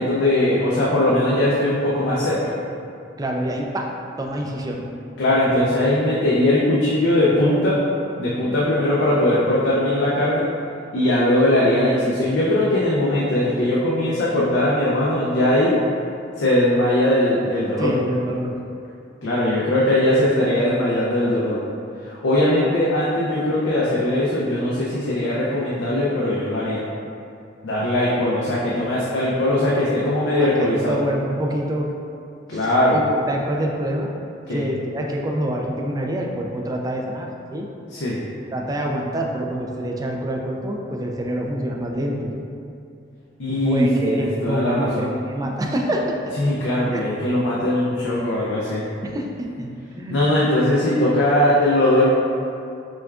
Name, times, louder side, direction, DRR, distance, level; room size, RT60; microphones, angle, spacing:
voice 1, 0.0-2.5 5.2-7.7 8.2-10.4 10.9-15.7 16.4-17.9 19.2-21.6 22.0-26.8 27.6-31.0 32.5-33.0 34.5-34.6 37.9-38.2 43.4-45.1 46.4-48.8 50.1-52.1, left 1 dB, 85° left, -7 dB, 0.5 m, -20 dB
voice 2, 3.2-3.9 4.2-4.8 17.8-18.5 30.4-31.9 32.5-34.1 34.5-37.7 38.5-42.4 43.5-46.2 46.9-47.0 49.0-49.7 50.0-50.2, right 1 dB, 20° right, 0 dB, 0.3 m, -26 dB
6.1 x 2.3 x 2.4 m, 2.5 s
head